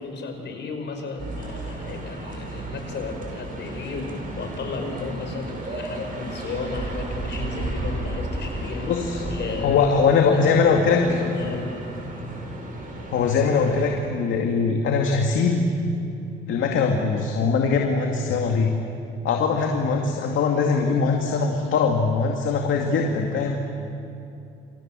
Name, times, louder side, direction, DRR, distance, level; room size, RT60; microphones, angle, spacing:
voice 1, 0.0-11.7, left 4 dB, 60° left, 4 dB, 5.7 m, -34 dB
sound 1, 1.2-14.0, right 2 dB, 45° right, 7.9 m, -33 dB
voice 2, 8.9-9.3 9.6-11.1 13.1-15.7 16.5-18.8 19.2-23.6, left 5 dB, 80° left, 2 dB, 2.4 m, -21 dB
29.5 x 25.5 x 7.7 m, 2.6 s
cardioid pair, 90°, 20 cm